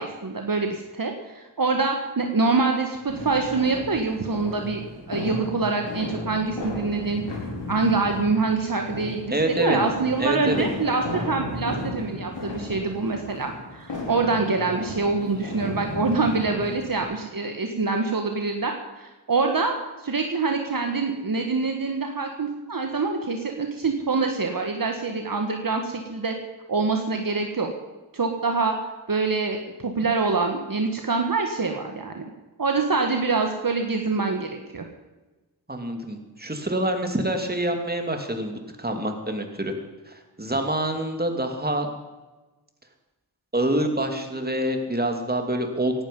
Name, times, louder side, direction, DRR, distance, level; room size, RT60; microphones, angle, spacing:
voice 1, 0.0-4.8 5.1-7.2 7.7-26.3 26.7-27.7 28.1-28.7 29.1-32.3 32.6-34.8, right 4 dB, 50° right, 3 dB, 1.7 m, -25 dB
sound 1, 3.1-17.0, left 2 dB, 85° left, 5.0 m, -34 dB
voice 2, 9.3-9.8 10.2-10.7 15.2-15.3 35.7-39.7 40.1-41.9 43.5-45.9, right 1 dB, 20° right, 4 dB, 2.7 m, -26 dB
17.0 x 11.5 x 5.5 m, 1.2 s
cardioid pair, 45°, 42 cm